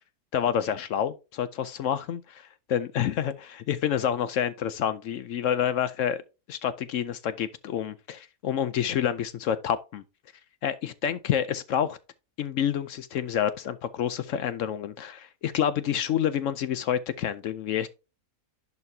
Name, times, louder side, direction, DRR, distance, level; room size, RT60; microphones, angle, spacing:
voice 1, 0.3-6.2 6.5-10.0 10.6-12.0 12.4-17.9, left 9 dB, 65° left, 0.8 m, -28 dB
11.0 x 4.2 x 2.8 m
omnidirectional pair, 1.7 m